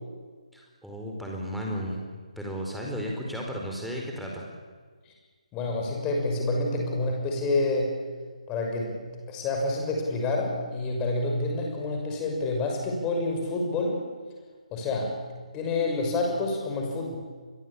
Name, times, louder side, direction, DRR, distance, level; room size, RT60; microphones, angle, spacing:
voice 1, 0.5-2.1 2.4-4.4, equal, ahead, -2 dB, 4.7 m, -34 dB
voice 2, 5.5-8.0 8.5-9.0 9.3-14.0 14.7-15.2 15.5-17.2, left 2 dB, 15° left, 1 dB, 6.2 m, -28 dB
27.5 x 22.0 x 8.8 m, 1.5 s
figure-of-eight pair, 145°, 4 cm